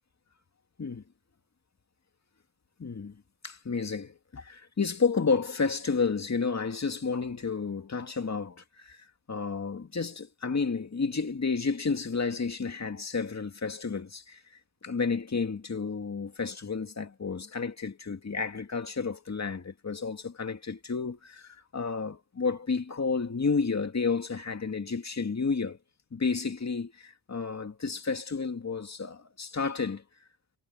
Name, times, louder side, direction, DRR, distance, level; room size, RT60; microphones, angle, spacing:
voice 1, 2.8-3.2 3.4-14.4 14.8-25.8 26.1-30.0, left 5 dB, 35° left, 2.5 m, -31 dB
cardioid pair, 95°, 46 cm